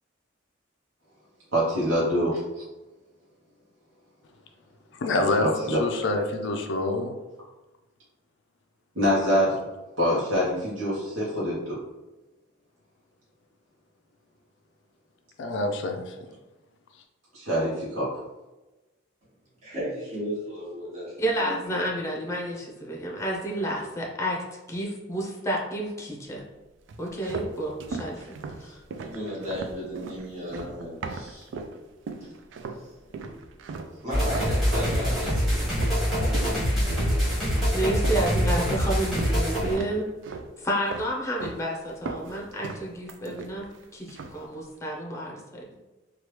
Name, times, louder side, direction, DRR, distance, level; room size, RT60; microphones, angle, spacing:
voice 1, 1.5-2.3 5.4-5.8 9.0-9.7 10.0-11.8 17.3-18.1, equal, 85° right, -8 dB, 0.8 m, -25 dB
voice 2, 4.9-7.2 15.4-16.2, left 2 dB, 65° left, 4 dB, 0.4 m, -26 dB
voice 3, 19.6-21.7 28.1-28.3 28.6-31.5 32.2-32.3 32.7-32.9 33.9-37.5, equal, 40° right, -7 dB, 1.4 m, -36 dB
voice 4, 21.2-26.4 27.0-28.3 28.6-28.8 37.7-40.1 40.6-45.6, right 1 dB, 15° left, -2 dB, 0.6 m, -30 dB
sound 1, 26.9-31.8 32.1-32.8 33.1-39.4 39.7-40.5 40.9-41.6 41.9-43.8 44.1-44.5, right 4 dB, 65° right, 0.3 m, -37 dB
sound 2, 34.1-39.8, equal, ahead, 1.1 m, -25 dB
3.2 x 2.3 x 3.0 m, 1.1 s
head